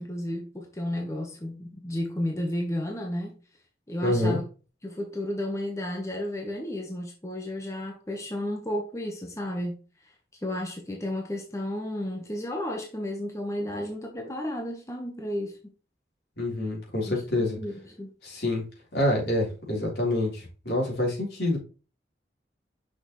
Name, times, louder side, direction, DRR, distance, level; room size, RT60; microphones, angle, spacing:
voice 1, 0.0-3.4 3.9-4.4 4.8-9.8 10.4-15.6 17.1-18.1, left 1 dB, 15° left, 1.1 m, -32 dB
voice 2, 4.0-4.4 16.4-17.6 18.2-18.6 18.9-21.6, left 1 dB, 70° left, 3.6 m, -27 dB
6.3 x 6.0 x 3.1 m
head